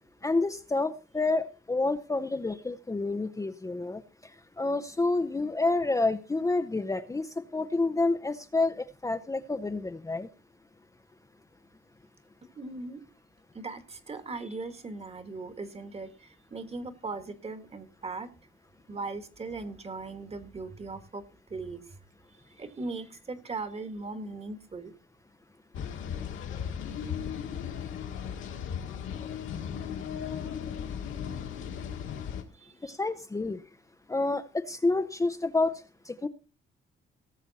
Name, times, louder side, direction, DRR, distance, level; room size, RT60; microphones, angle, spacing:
voice 1, 0.2-10.3 32.8-33.6 34.1-36.3, left 3 dB, 15° left, 8 dB, 0.8 m, -29 dB
voice 2, 12.6-13.0 13.5-18.3 18.9-21.2 21.5-22.0 22.6-24.9 32.5-32.9, right 3 dB, 30° right, 11 dB, 1.8 m, -39 dB
sound 1, 25.7-32.4, left 8 dB, 85° left, 1.9 m, -36 dB
18.5 x 7.0 x 4.2 m, 0.34 s
cardioid pair, 90°, 20 cm